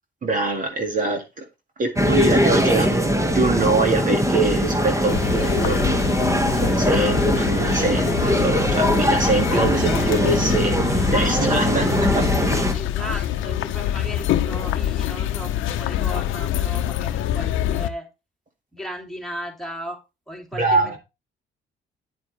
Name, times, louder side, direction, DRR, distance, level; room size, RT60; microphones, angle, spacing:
voice 1, 0.2-1.4 1.8-2.9 3.3-5.8 6.2-12.6 20.5-21.0, right 2 dB, 40° right, 2.0 m, -24 dB
sound 1, 2.0-12.7, equal, 15° right, 1.5 m, -21 dB
sound 2, 5.1-17.9, left 12 dB, 85° left, 0.7 m, -25 dB
voice 2, 8.1-8.6 12.7-18.1 18.7-20.0 20.3-21.0, equal, ahead, 2.8 m, -36 dB
9.7 x 7.4 x 3.2 m
cardioid pair, 90°, 20 cm